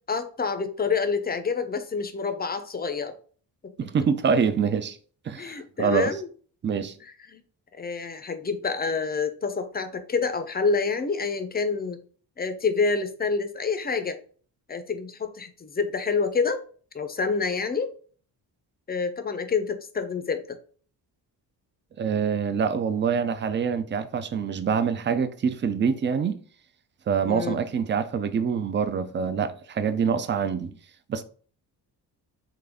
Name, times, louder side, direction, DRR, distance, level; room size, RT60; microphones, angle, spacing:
voice 1, 0.1-3.1 5.4-6.3 7.3-7.4 7.7-12.0 12.4-14.2 14.7-16.6 16.9-17.9 18.9-20.6 27.2-27.6, left 4 dB, 25° left, 0.5 m, -27 dB
voice 2, 3.8-5.0 5.3-6.2 6.6-7.0 22.0-26.4 27.1-30.7 31.1-31.2, right 6 dB, 30° right, 0.4 m, -25 dB
3.9 x 3.3 x 3.5 m
cardioid pair, 105°, 42 cm